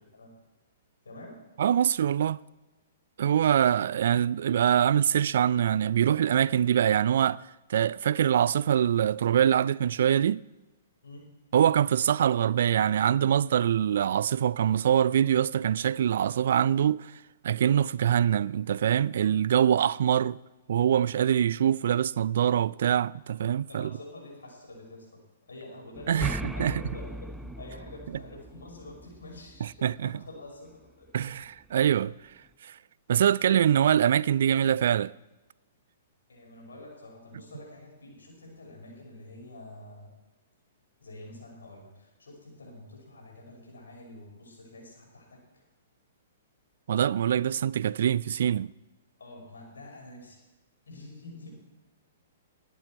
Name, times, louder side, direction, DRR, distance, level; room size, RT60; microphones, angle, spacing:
voice 1, 1.0-1.4 11.0-11.2 23.7-25.1 25.4-31.1 36.3-40.1 41.0-45.4 49.2-50.4 50.9-51.5, left 2 dB, 75° left, 5.5 m, -47 dB
voice 2, 1.6-2.4 3.2-7.4 7.7-10.4 11.5-17.1 17.4-20.4 20.7-23.9 26.1-26.7 29.6-30.1 31.1-31.3 31.7-32.2 32.6-32.8 33.1-35.1 46.9-48.7, right 9 dB, 60° right, 0.3 m, -24 dB
sound 1, 25.9-29.9, right 1 dB, 5° right, 0.5 m, -38 dB
20.5 x 8.2 x 4.6 m
figure-of-eight pair, 115°, 0 cm